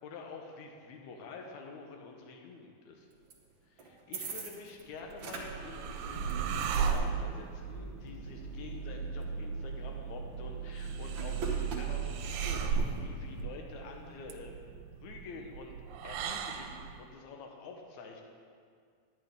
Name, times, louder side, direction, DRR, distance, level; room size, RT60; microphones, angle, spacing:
voice 1, 0.0-3.1 3.7-15.8 16.0-18.2, left 4 dB, 80° left, 2 dB, 2.3 m, -48 dB
sound 1, 3.3-3.4 3.8-4.8 5.1-13.4, right 5 dB, 60° right, 1.4 m, -38 dB
sound 2, 5.0-17.0, right 6 dB, 90° right, 2.0 m, -38 dB
10.0 x 10.0 x 3.5 m, 2.1 s
omnidirectional pair, 3.3 m